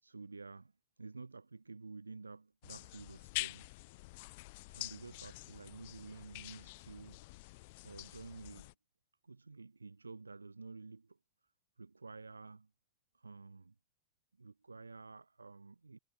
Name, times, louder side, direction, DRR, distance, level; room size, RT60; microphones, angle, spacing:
voice 1, 0.0-3.7 4.6-7.3 7.8-8.7 9.2-11.2 11.8-12.7 13.1-13.7 14.4-16.0, right 3 dB, 80° right, 3.3 m, -51 dB
sound 1, 2.6-8.7, left 23 dB, 50° left, 1.4 m, -46 dB
figure-of-eight pair, 90°, 0 cm